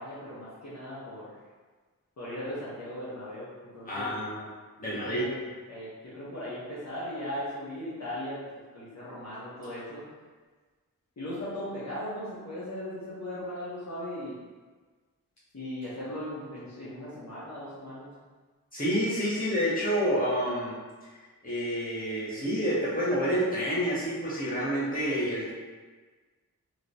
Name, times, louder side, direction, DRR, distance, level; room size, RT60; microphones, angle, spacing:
voice 1, 0.0-1.3 2.2-4.1 4.8-5.4 5.7-8.4 8.7-10.0 11.2-14.4 15.5-18.1, left 1 dB, 50° left, -10 dB, 1.0 m, -38 dB
voice 2, 3.8-4.5 4.8-5.2 18.7-20.7 21.4-25.5, equal, 25° left, -9 dB, 1.4 m, -28 dB
3.0 x 2.8 x 2.7 m, 1.4 s
cardioid pair, 40°, 34 cm